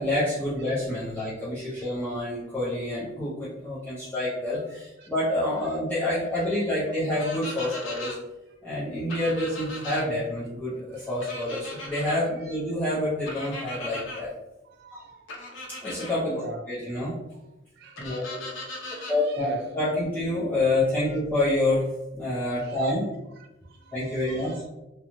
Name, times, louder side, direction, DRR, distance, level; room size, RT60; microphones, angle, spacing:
voice 1, 0.0-8.2 8.6-14.3 14.9-15.0 15.8-16.3 16.7-17.2 18.0-18.4 19.1-21.9 22.1-23.1 23.9-24.6, left 1 dB, 10° left, -11 dB, 0.5 m, -27 dB
sound 1, 7.1-8.2 9.1-10.0 11.2-12.2 13.3-14.2 15.3-16.1 18.0-19.2, left 1 dB, 75° left, 0.6 m, -38 dB
voice 2, 14.8-15.2 16.3-16.6 17.8-19.6 22.6-22.9 23.4-24.0 24.2-24.6, right 4 dB, 60° right, 3 dB, 0.3 m, -44 dB
2.5 x 2.2 x 2.9 m, 0.99 s
head